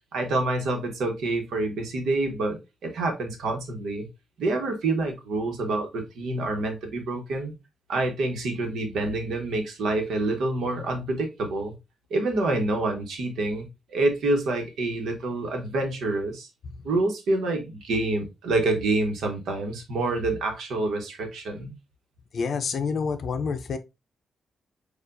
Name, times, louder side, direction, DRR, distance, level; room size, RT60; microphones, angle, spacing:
voice 1, 0.1-4.1 4.4-7.5 7.9-11.7 12.1-16.5 16.8-21.7, right 2 dB, 85° right, 1.1 m, -27 dB
voice 2, 22.3-23.8, left 5 dB, 50° left, 0.5 m, -28 dB
6.7 x 2.4 x 2.5 m
wide cardioid pair, 160°, 0 cm